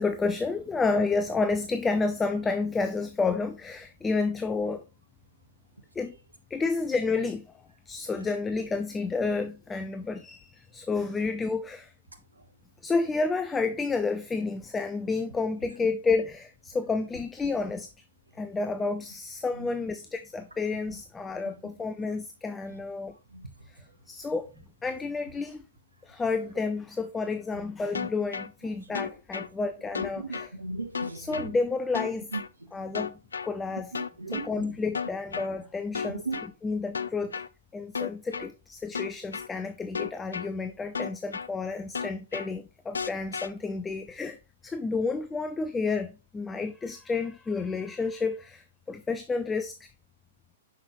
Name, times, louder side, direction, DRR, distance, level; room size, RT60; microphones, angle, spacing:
voice 1, 0.0-4.8 5.9-6.2 6.5-7.5 7.9-11.9 12.8-17.9 18.3-23.2 23.7-24.5 24.8-25.6 26.0-30.5 31.1-32.3 32.7-33.9 34.3-36.2 36.6-37.4 37.7-44.4 44.6-49.9, left 4 dB, 10° left, 0.4 m, -30 dB
sound 1, 27.9-28.5 28.9-29.5 29.9-30.5 30.9-31.5 31.9-32.5 32.9-33.5 33.9-34.5 34.9-35.5 35.9-36.5 36.9-37.5 37.9-38.5 38.9-39.5 39.9-40.5 40.9-41.5 41.9-42.5 42.9-43.5, left 6 dB, 70° left, 0.4 m, -33 dB
voice 2, 30.2-31.5 32.3-32.9 33.9-34.8 36.0-36.4, right 3 dB, 80° right, 1.1 m, -37 dB
6.1 x 5.6 x 3.0 m
figure-of-eight pair, 110°, 0 cm